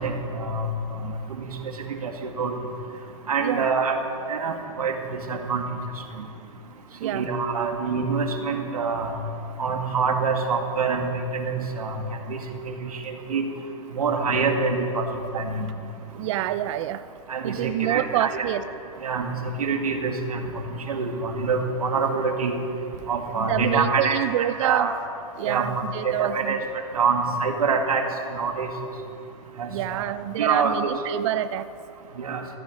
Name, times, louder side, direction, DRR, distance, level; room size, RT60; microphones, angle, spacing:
voice 1, 0.0-1.5 1.9-2.5 3.3-4.0 4.3-5.6 7.0-9.1 9.6-11.1 11.3-12.0 12.3-12.7 13.0-13.4 13.9-15.1 15.3-15.7 17.3-18.5 19.0-20.4 20.7-22.6 23.1-24.9 25.4-25.7 26.0-26.6 26.9-28.0 28.3-28.7 29.6-29.7 30.4-30.9 32.2-32.4, right 4 dB, 85° right, 4 dB, 2.0 m, -26 dB
voice 2, 16.1-17.0 17.4-18.6 23.3-24.9 25.4-26.6 29.7-31.7, right 12 dB, 55° right, 13 dB, 0.6 m, -27 dB
15.5 x 14.5 x 5.2 m, 2.6 s
hypercardioid pair, 120°, 18 cm